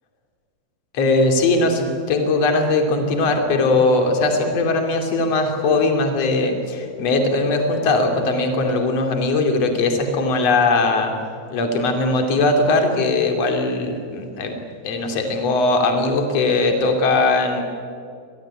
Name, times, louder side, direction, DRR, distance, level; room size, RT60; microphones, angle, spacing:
voice 1, 0.9-11.1 11.5-14.5 14.8-17.6, left 2 dB, 40° left, 4 dB, 3.2 m, -19 dB
26.5 x 18.5 x 9.8 m, 2.4 s
omnidirectional pair, 5.4 m